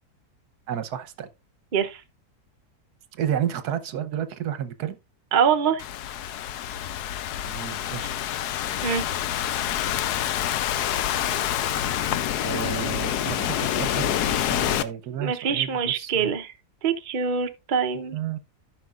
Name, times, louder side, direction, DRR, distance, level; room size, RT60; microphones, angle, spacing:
voice 1, 0.7-1.3 3.1-5.0 7.5-8.1 11.7-12.0 12.4-16.3 18.1-18.4, right 9 dB, 75° right, 1.3 m, -31 dB
voice 2, 5.3-5.8 8.8-9.1 15.2-16.5 16.8-18.2, right 7 dB, 40° right, 0.7 m, -24 dB
Thunderstorm / Rain, 5.8-14.8, left 11 dB, 80° left, 1.2 m, -27 dB
13.5 x 5.8 x 2.4 m
omnidirectional pair, 1.7 m